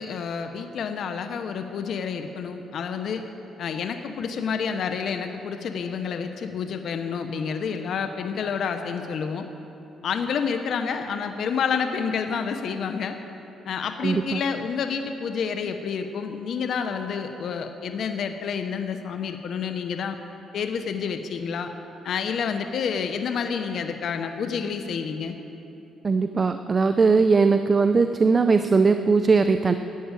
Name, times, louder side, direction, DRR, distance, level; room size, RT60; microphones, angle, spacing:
voice 1, 0.0-3.2 3.6-9.5 10.0-13.2 13.7-20.2 20.5-21.7 22.0-25.4, left 6 dB, 65° left, 7 dB, 0.8 m, -29 dB
voice 2, 14.0-14.4 26.0-29.7, right 4 dB, 35° right, 9 dB, 0.5 m, -20 dB
12.0 x 8.6 x 9.0 m, 2.9 s
cardioid pair, 90°, 0 cm